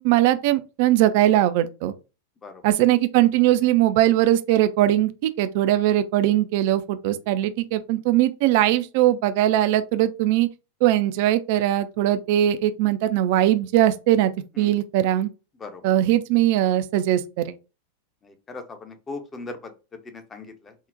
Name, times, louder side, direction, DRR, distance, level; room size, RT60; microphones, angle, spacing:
voice 1, 0.0-1.9 2.6-10.5 10.8-14.3 14.6-15.3 15.8-17.5, right 13 dB, 50° right, 0.3 m, -20 dB
voice 2, 18.2-20.7, left 3 dB, 20° left, 0.6 m, -39 dB
3.7 x 2.1 x 2.5 m
figure-of-eight pair, 90°, 0 cm